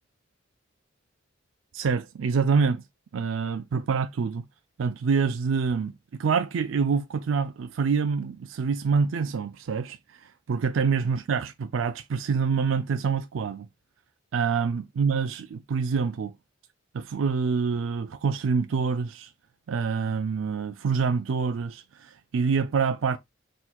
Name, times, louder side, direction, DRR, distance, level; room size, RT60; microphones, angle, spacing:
voice 1, 1.7-2.8 3.1-4.4 4.8-5.9 6.2-10.0 10.5-13.7 14.3-16.3 16.9-19.3 19.7-23.2, right 5 dB, 90° right, 0.4 m, -26 dB
4.4 x 3.8 x 2.2 m
head